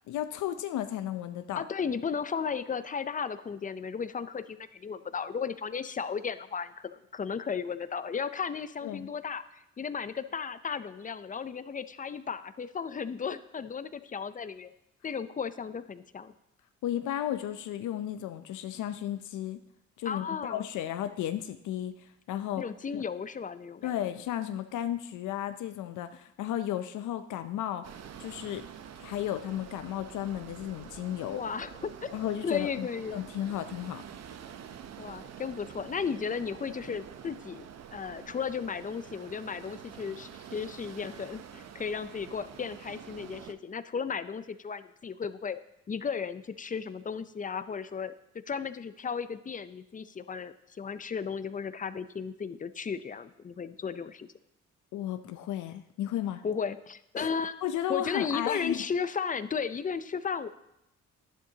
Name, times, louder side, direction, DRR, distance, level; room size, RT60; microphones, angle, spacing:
voice 1, 0.1-1.6 8.8-9.1 16.8-19.6 20.0-22.6 22.9-23.0 23.8-28.7 29.0-31.4 32.1-34.0 54.9-56.4 57.2-57.3 57.6-58.8, left 11 dB, 75° left, 9 dB, 0.6 m, -34 dB
voice 2, 1.5-14.7 15.0-16.3 20.1-20.6 22.6-23.9 31.3-33.2 35.0-37.7 37.9-45.6 45.9-48.1 48.5-54.3 56.4-57.6 57.9-60.5, left 6 dB, 25° left, 13 dB, 0.5 m, -35 dB
sound 1, 27.8-43.5, right 8 dB, 60° right, 0.7 m, -47 dB
11.0 x 10.5 x 2.8 m, 0.84 s
cardioid pair, 90°, 30 cm